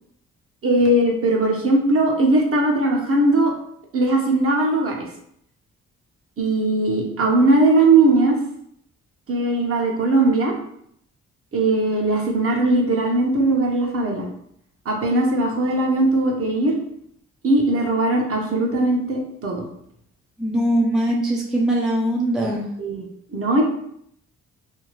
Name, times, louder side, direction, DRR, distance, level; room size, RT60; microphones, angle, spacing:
voice 1, 0.6-3.5 3.9-5.1 6.4-8.4 9.3-10.5 11.5-14.3 14.8-16.8 17.4-19.6 22.4-22.5 22.8-23.0 23.3-23.6, right 2 dB, 45° right, 0 dB, 0.9 m, -19 dB
voice 2, 20.4-22.7, right 1 dB, ahead, -2 dB, 0.4 m, -21 dB
2.7 x 2.3 x 3.0 m, 0.70 s
cardioid pair, 70°, 32 cm